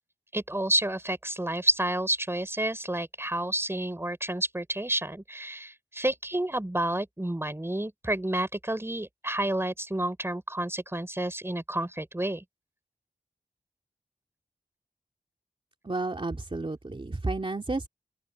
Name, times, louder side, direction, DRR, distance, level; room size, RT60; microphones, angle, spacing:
voice 1, 0.3-12.4, right 1 dB, 15° right, 4.0 m, -30 dB
voice 2, 15.8-17.9, right 2 dB, 35° right, 2.8 m, -31 dB
open air
wide cardioid pair, 65°, 15 cm